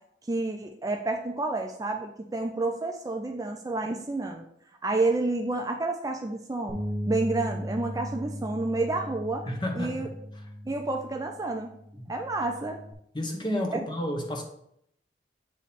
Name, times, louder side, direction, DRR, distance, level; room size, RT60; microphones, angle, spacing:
voice 1, 0.3-4.4 4.8-6.7 7.1-9.5 9.7-10.1 10.7-11.7 12.1-12.8 13.7-13.8, right 2 dB, 20° right, 3 dB, 0.4 m, -29 dB
Bass guitar, 6.7-12.9, equal, ahead, 1.1 m, -37 dB
voice 2, 9.5-10.1 10.4-10.5 12.0-12.1 13.1-14.4, equal, 25° left, 2 dB, 1.0 m, -31 dB
8.4 x 3.1 x 4.2 m, 0.73 s
head